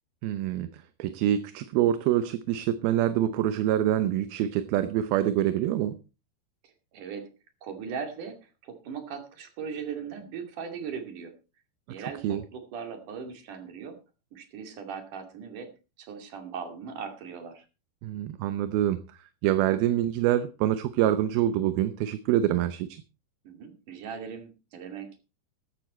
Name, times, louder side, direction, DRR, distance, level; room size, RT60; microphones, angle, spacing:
voice 1, 0.2-0.7 1.0-5.9 12.0-12.4 18.0-19.0 19.4-23.0, right 12 dB, 80° right, 12 dB, 2.6 m, -26 dB
voice 2, 6.6-7.3 7.6-11.3 11.9-14.0 14.3-15.7 16.0-17.7 23.4-25.2, right 6 dB, 60° right, 6 dB, 3.9 m, -39 dB
14.5 x 11.5 x 4.2 m, 0.31 s
omnidirectional pair, 4.4 m